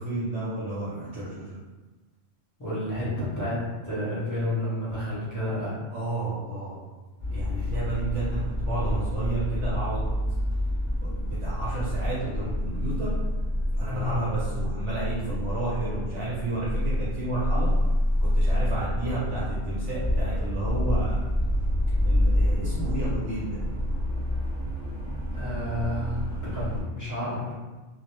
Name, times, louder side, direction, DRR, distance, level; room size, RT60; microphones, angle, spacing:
voice 1, 0.0-1.6 5.9-6.8 7.3-10.0 11.0-13.1 13.8-17.7 18.2-21.2 22.0-23.6, right 2 dB, 65° right, -8 dB, 0.9 m, -31 dB
voice 2, 2.6-5.8 13.9-14.2 25.3-26.2 26.5-27.5, left 1 dB, 20° left, -9 dB, 0.5 m, -30 dB
sound 1, 7.2-26.8, left 1 dB, 10° right, 0.8 m, -28 dB
2.4 x 2.0 x 2.9 m, 1.2 s
omnidirectional pair, 1.3 m